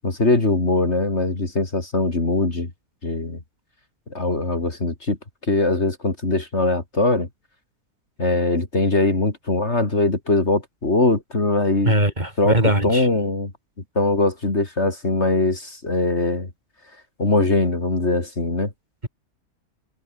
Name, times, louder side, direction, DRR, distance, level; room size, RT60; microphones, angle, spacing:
voice 1, 0.0-2.7 3.0-3.4 4.1-5.2 5.5-7.3 8.2-12.0 12.4-13.5 14.0-16.5 17.2-18.7, left 2 dB, 45° left, 3.7 m, -21 dB
voice 2, 11.8-13.1, right 1 dB, 30° right, 6.1 m, -20 dB
omnidirectional pair, 1.6 m